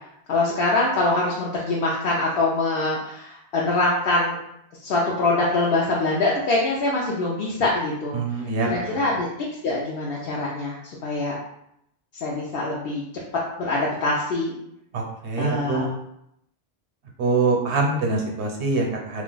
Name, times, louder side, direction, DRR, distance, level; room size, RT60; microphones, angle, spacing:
voice 1, 0.3-4.4 4.8-8.2 8.7-9.3 9.6-11.4 12.2-13.0 13.6-14.6 15.4-15.9, left 2 dB, 65° left, -5 dB, 0.8 m, -24 dB
voice 2, 8.1-9.1 14.9-15.9 17.2-19.2, right 3 dB, 90° right, 1 dB, 1.0 m, -24 dB
2.4 x 2.3 x 3.8 m, 0.77 s
omnidirectional pair, 1.1 m